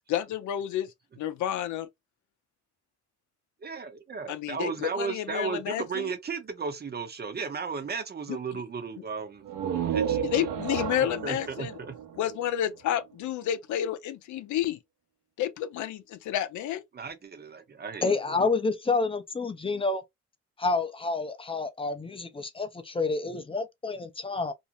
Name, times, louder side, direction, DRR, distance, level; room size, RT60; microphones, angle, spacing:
voice 1, 0.1-0.9 1.2-1.9 4.3-6.1 8.3-8.6 10.2-11.7 12.2-14.8 15.4-16.8, left 11 dB, 75° left, 0.5 m, -30 dB
voice 2, 3.6-9.4 9.7-10.5 11.2-11.9 16.9-18.5, right 5 dB, 35° right, 0.7 m, -35 dB
sound 1, 9.4-13.1, right 8 dB, 75° right, 0.8 m, -32 dB
voice 3, 18.0-20.0 20.6-24.5, left 3 dB, 20° left, 0.5 m, -29 dB
2.5 x 2.1 x 2.7 m
cardioid pair, 90°, 30 cm